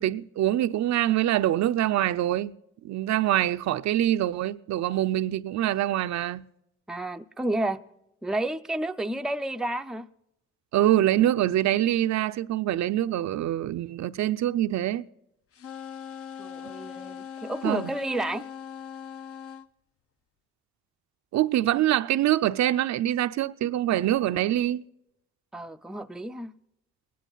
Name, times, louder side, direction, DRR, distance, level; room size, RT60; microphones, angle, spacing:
voice 1, 0.0-2.5 2.8-6.4 10.7-15.0 17.6-17.9 21.3-24.8, right 13 dB, 65° right, 0.5 m, -24 dB
voice 2, 6.9-7.8 8.2-10.1 16.4-18.5 25.5-26.5, right 1 dB, ahead, 0.5 m, -31 dB
sound 1, 15.5-19.7, left 8 dB, 50° left, 0.7 m, -40 dB
19.5 x 10.0 x 3.9 m
cardioid pair, 90°, 30 cm